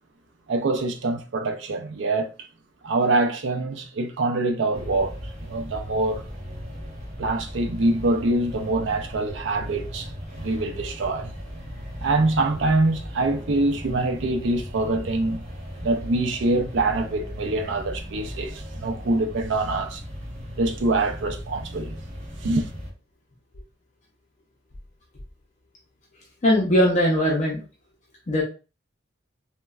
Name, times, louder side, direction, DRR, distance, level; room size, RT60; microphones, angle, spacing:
voice 1, 0.5-2.3 2.8-6.2 7.2-11.3 12.0-15.4 15.8-20.0 20.6-21.9 22.4-22.7, right 2 dB, 70° right, 0.4 m, -25 dB
sound 1, 4.7-22.9, equal, 40° right, 0.8 m, -37 dB
voice 2, 26.4-27.6 28.3-28.4, equal, 40° left, 0.6 m, -20 dB
3.0 x 2.1 x 2.3 m
head